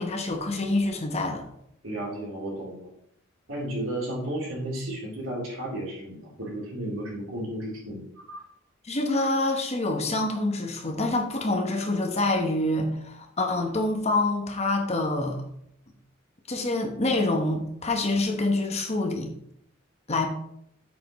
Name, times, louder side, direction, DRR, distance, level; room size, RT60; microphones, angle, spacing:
voice 1, 0.0-1.4 8.8-15.4 16.5-19.3 20.1-20.3, left 2 dB, 30° left, 3 dB, 1.2 m, -26 dB
voice 2, 1.8-2.9 3.5-8.4, right 1 dB, 80° right, -4 dB, 3.8 m, -33 dB
8.5 x 7.7 x 3.1 m, 0.72 s
head